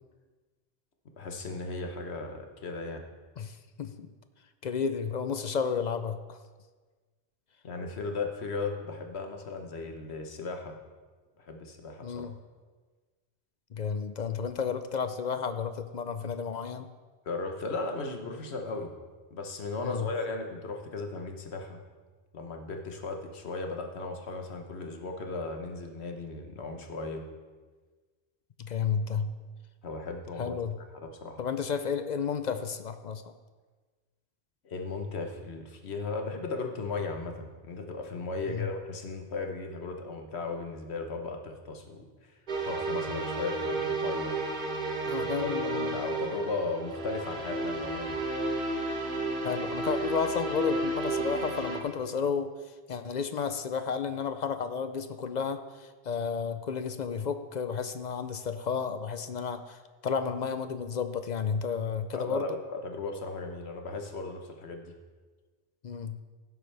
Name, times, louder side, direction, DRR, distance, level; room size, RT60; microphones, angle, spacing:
voice 1, 1.2-3.0 7.6-10.8 11.4-12.3 17.2-18.9 19.3-21.8 22.3-27.2 29.8-30.6 31.0-31.4 34.6-42.1 42.6-44.3 45.2-48.2 62.1-64.9, left 3 dB, 70° left, 4 dB, 1.3 m, -36 dB
voice 2, 3.4-4.1 4.6-6.4 12.0-12.3 13.7-16.9 19.8-20.1 28.6-29.3 30.4-30.8 31.4-33.3 38.5-38.7 45.0-45.9 49.4-62.5 65.8-66.2, left 6 dB, 50° left, 10 dB, 0.6 m, -32 dB
sound 1, 42.5-51.8, right 2 dB, 50° right, 1.2 m, -32 dB
16.5 x 7.8 x 3.4 m, 1.4 s
omnidirectional pair, 1.1 m